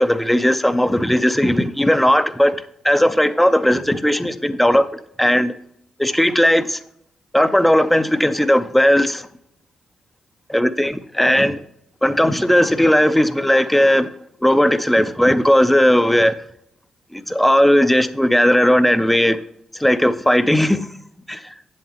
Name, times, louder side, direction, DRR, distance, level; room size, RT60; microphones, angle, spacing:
voice 1, 0.0-2.6 2.8-4.9 5.2-5.5 6.0-6.8 7.3-9.2 10.5-11.6 12.0-14.1 14.4-16.3 17.1-19.4 19.8-20.9 21.3-21.4, equal, 5° left, 0.5 m, -16 dB
7.7 x 7.4 x 2.9 m
cardioid pair, 75°, 2 cm